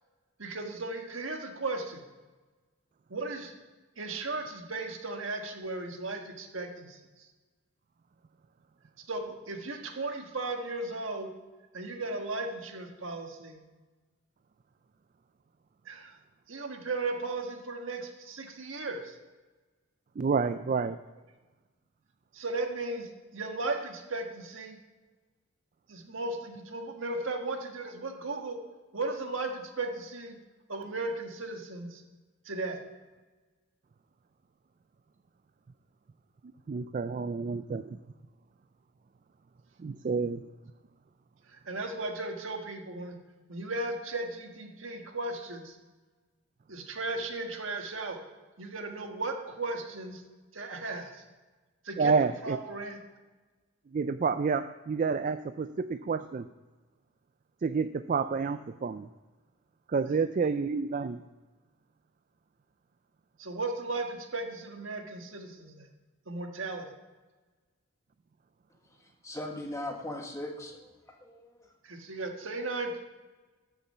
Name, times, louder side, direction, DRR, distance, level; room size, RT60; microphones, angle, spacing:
voice 1, 0.4-2.0 3.1-3.5 4.0-7.3 9.1-11.3 11.7-13.6 15.8-16.2 16.5-19.2 22.3-24.8 25.9-28.6 28.9-30.4 30.7-32.0 32.4-32.8 41.5-43.2 43.5-45.8 46.7-48.2 48.6-50.2 50.5-51.2 51.8-52.1 52.4-53.0 60.1-60.2 63.4-65.9 66.3-66.9 71.8-73.0, right 2 dB, 70° right, 3 dB, 1.5 m, -36 dB
voice 2, 20.2-21.0 36.7-38.0 39.8-40.5 52.0-52.6 53.9-56.5 57.6-59.1 59.9-61.2, right 5 dB, 40° right, 11 dB, 0.3 m, -29 dB
voice 3, 69.0-70.9 71.2-71.7, left 1 dB, 15° left, 2 dB, 1.4 m, -39 dB
13.0 x 7.0 x 5.5 m, 1.2 s
head